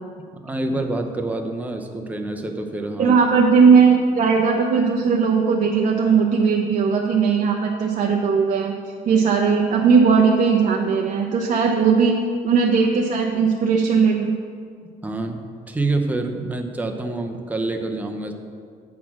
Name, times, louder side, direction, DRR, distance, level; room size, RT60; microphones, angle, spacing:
voice 1, 0.4-3.2 15.0-15.4 15.7-18.3, right 2 dB, 10° right, 4 dB, 0.7 m, -26 dB
voice 2, 3.0-8.7 9.0-12.2 12.4-14.3, right 5 dB, 45° right, 1 dB, 0.6 m, -18 dB
8.2 x 4.2 x 6.0 m, 2.2 s
cardioid pair, 110°, 17 cm